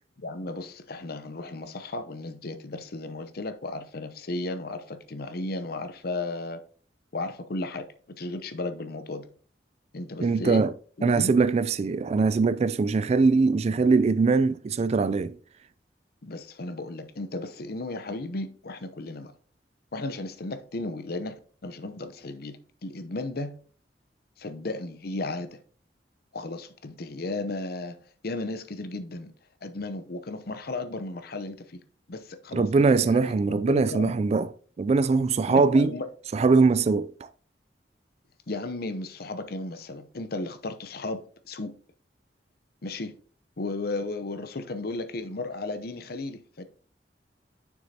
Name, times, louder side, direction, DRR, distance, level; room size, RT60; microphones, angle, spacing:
voice 1, 0.2-6.6 7.1-7.9 8.2-9.2 9.9-10.6 11.0-11.3 16.2-19.3 19.9-21.4 21.6-23.5 24.4-25.6 26.3-28.0 28.2-29.3 29.6-31.8 32.1-34.2 35.5-36.1 38.5-41.7 42.8-43.1 43.6-46.6, left 2 dB, 60° left, 0.7 m, -34 dB
voice 2, 10.2-10.7 11.0-15.4 32.5-34.5 34.8-35.9 36.3-37.1, right 4 dB, 35° right, 0.3 m, -22 dB
7.0 x 6.3 x 2.8 m
head